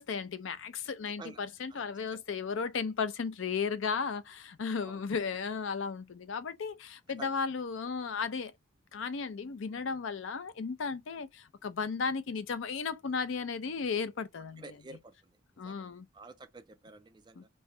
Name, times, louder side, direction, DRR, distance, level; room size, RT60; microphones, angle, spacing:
voice 1, 0.0-8.5 8.9-14.7 15.6-16.1 17.4-17.5, left 5 dB, 65° left, 0.5 m, -35 dB
voice 2, 14.6-15.3 15.6-17.5, right 3 dB, 20° right, 0.3 m, -50 dB
3.1 x 2.6 x 3.6 m
head